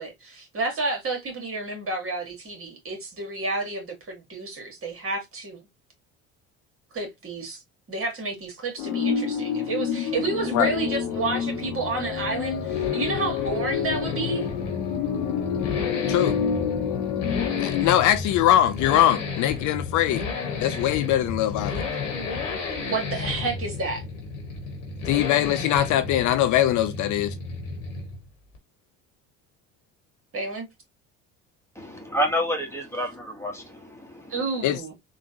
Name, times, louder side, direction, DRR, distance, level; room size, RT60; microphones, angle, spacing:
voice 1, 0.0-5.6 6.9-7.6 7.9-14.5 22.8-24.0 30.3-30.7 34.3-34.9, right 3 dB, 35° right, 1.8 m, -30 dB
sound 1, 8.8-17.9, left 7 dB, 70° left, 0.9 m, -28 dB
Accelerating revving vroom, 10.1-28.3 28.5-28.6, left 4 dB, 85° left, 1.3 m, -33 dB
voice 2, 17.6-20.2 20.6-21.9 25.1-27.4 34.6-34.8, left 12 dB, 55° left, 0.5 m, -22 dB
voice 3, 31.8-34.3, equal, 5° left, 1.2 m, -29 dB
3.7 x 2.4 x 2.8 m
hypercardioid pair, 65°, 37 cm